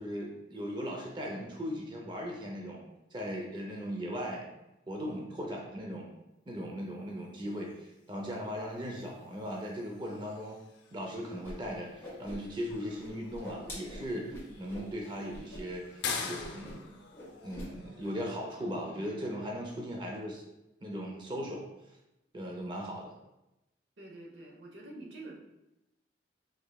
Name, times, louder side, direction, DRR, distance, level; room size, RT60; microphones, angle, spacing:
voice 1, 0.0-2.8 3.1-4.5 4.9-6.1 6.5-10.6 10.9-17.0 17.4-20.4 20.8-21.6 22.3-23.1, equal, 25° right, 0 dB, 0.6 m, -38 dB
sound 1, 7.6-19.5, left 5 dB, 70° left, 0.6 m, -46 dB
Whoosh swoosh swish, 11.4-11.5 11.8-12.7 13.0-14.9 15.3-15.6 15.9-16.0 16.4-16.9 17.1-17.7, left 1 dB, 15° left, 1.4 m, -44 dB
voice 2, 24.0-25.3, right 2 dB, 80° right, 0 dB, 0.9 m, -47 dB
5.0 x 3.8 x 2.3 m, 0.92 s
head